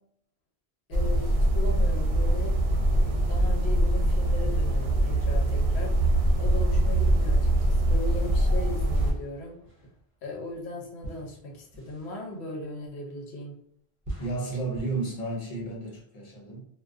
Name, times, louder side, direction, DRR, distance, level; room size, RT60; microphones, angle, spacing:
voice 1, 0.9-2.5 2.8-5.9 6.4-9.6 10.2-13.5, left 2 dB, 80° left, 0 dB, 0.9 m, -38 dB
sound 1, 0.9-9.1, right 1 dB, 70° right, 0.8 m, -23 dB
sound 2, 8.9-13.4 14.0-16.0, right 1 dB, 35° right, 0.6 m, -44 dB
voice 2, 14.2-16.6, right 3 dB, 40° left, -2 dB, 0.7 m, -32 dB
2.3 x 2.2 x 2.4 m, 0.68 s
omnidirectional pair, 1.1 m